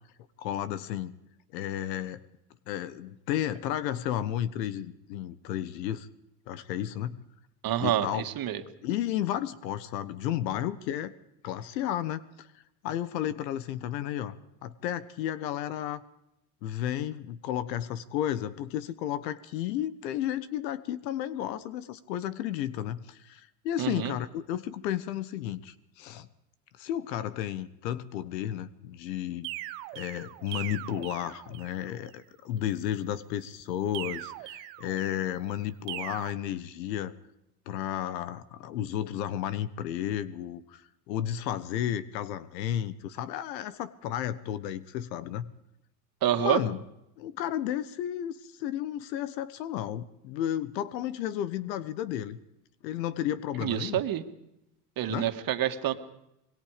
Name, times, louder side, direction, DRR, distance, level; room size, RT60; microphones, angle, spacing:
voice 1, 0.4-1.1 1.5-2.2 2.7-6.1 6.5-7.2 7.8-8.3 8.8-11.1 11.4-12.5 12.8-14.4 14.6-16.0 16.6-26.3 26.8-29.5 29.9-37.1 37.7-45.5 46.3-46.8 47.2-52.4 52.8-54.0 55.1-55.3, left 11 dB, 80° left, 15 dB, 1.3 m, -33 dB
voice 2, 7.6-8.6 23.8-24.2 46.2-46.6 53.6-54.2 55.0-55.9, right 11 dB, 45° right, 8 dB, 2.2 m, -27 dB
sound 1, 29.4-31.9 33.9-35.3 35.9-36.3, right 19 dB, 75° right, 1.3 m, -40 dB
26.5 x 21.5 x 5.1 m, 0.84 s
supercardioid pair, 95°, 49 cm